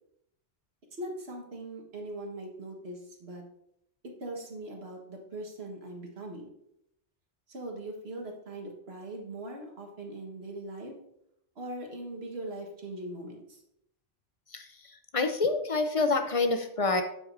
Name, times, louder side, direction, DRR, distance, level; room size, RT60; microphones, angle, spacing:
voice 1, 1.0-3.4 4.0-6.5 7.5-10.9 11.5-13.6, right 1 dB, 60° right, 1 dB, 1.7 m, -40 dB
voice 2, 15.1-17.0, left 3 dB, 40° left, 7 dB, 0.6 m, -27 dB
8.5 x 7.8 x 2.6 m, 0.76 s
omnidirectional pair, 1.2 m